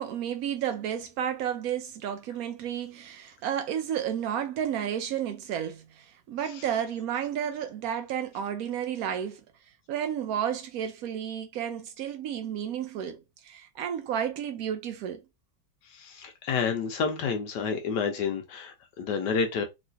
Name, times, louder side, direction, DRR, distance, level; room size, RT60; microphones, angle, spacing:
voice 1, 0.0-9.4 9.9-15.2, right 9 dB, 90° right, 0.7 m, -32 dB
voice 2, 15.8-19.6, left 5 dB, 70° left, 1.1 m, -29 dB
3.1 x 3.1 x 2.6 m
omnidirectional pair, 2.1 m